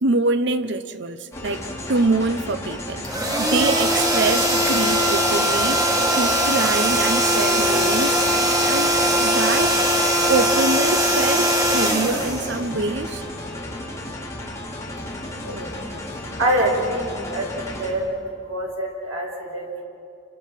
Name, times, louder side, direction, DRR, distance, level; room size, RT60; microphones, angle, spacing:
voice 1, 0.0-1.6 1.9-3.0 3.4-8.2 8.7-8.9 9.2-9.8 10.3-13.2, right 3 dB, 55° right, 0.9 m, -24 dB
sound 1, 1.3-17.9, left 1 dB, 15° left, 3.8 m, -34 dB
sound 2, 3.0-13.0, equal, 20° right, 2.3 m, -20 dB
voice 2, 15.4-15.8 16.4-18.1 18.4-19.8, right 1 dB, 90° right, 5.3 m, -25 dB
29.5 x 24.0 x 5.9 m
head